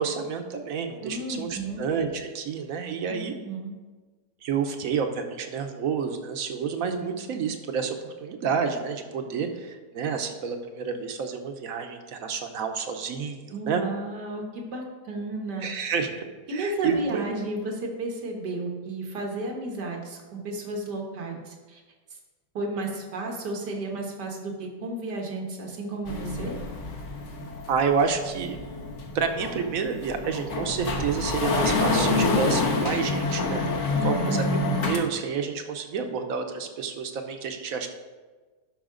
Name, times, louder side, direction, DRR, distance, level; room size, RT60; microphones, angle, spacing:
voice 1, 0.0-3.3 4.4-13.8 15.6-16.3 16.5-17.3 27.7-28.6 29.1-37.9, right 6 dB, 60° right, 6 dB, 1.1 m, -29 dB
voice 2, 1.0-1.8 3.1-3.2 3.4-3.7 13.5-15.7 16.5-21.8 22.6-26.6 33.9-34.4, right 2 dB, 90° right, 1 dB, 2.0 m, -32 dB
sound 1, 26.1-35.0, left 3 dB, 50° left, 1.3 m, -27 dB
12.0 x 5.7 x 3.8 m, 1.3 s
omnidirectional pair, 1.7 m